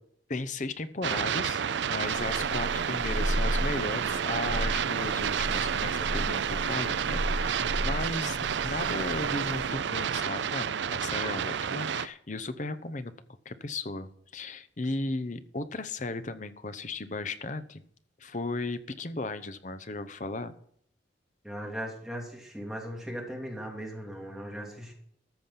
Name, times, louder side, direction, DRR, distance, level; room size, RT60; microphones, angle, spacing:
voice 1, 0.3-13.1 13.4-17.8 18.2-20.5, left 2 dB, 40° left, 13 dB, 0.8 m, -36 dB
sound 1, 1.0-12.1, right 7 dB, 70° right, 0.4 m, -30 dB
sound 2, 2.0-9.7, equal, 20° right, 4.8 m, -35 dB
voice 2, 21.4-24.9, equal, 5° right, -1 dB, 2.7 m, -38 dB
13.5 x 7.2 x 5.8 m, 0.65 s
head